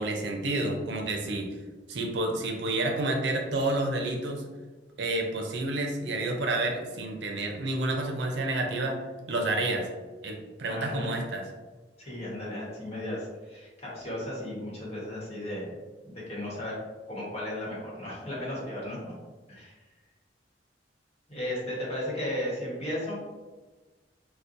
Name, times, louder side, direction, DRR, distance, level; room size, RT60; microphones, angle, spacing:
voice 1, 0.0-1.5 1.9-4.4 5.0-9.0 9.3-9.9 10.2-11.4, right 2 dB, 75° right, 2 dB, 0.6 m, -29 dB
voice 2, 10.7-11.1 12.0-15.7 16.0-16.8 17.1-19.1 19.5-19.7 21.3-23.2, left 1 dB, 35° left, -5 dB, 1.1 m, -35 dB
4.0 x 2.2 x 2.5 m, 1.2 s
head